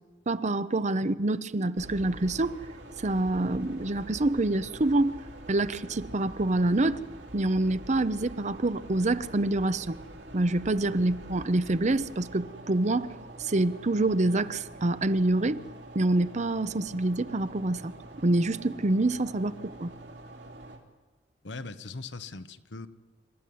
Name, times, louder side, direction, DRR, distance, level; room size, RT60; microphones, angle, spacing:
voice 1, 0.3-2.6 3.0-5.2 5.5-7.0 7.3-10.0 10.3-13.1 13.4-15.6 15.9-17.9 18.2-19.9, right 2 dB, 40° right, 14 dB, 0.7 m, -26 dB
sound 1, 1.8-20.8, right 1 dB, 75° right, 3.3 m, -45 dB
voice 2, 21.4-22.9, left 3 dB, 75° left, 11 dB, 1.1 m, -40 dB
26.5 x 14.0 x 9.4 m, 1.2 s
head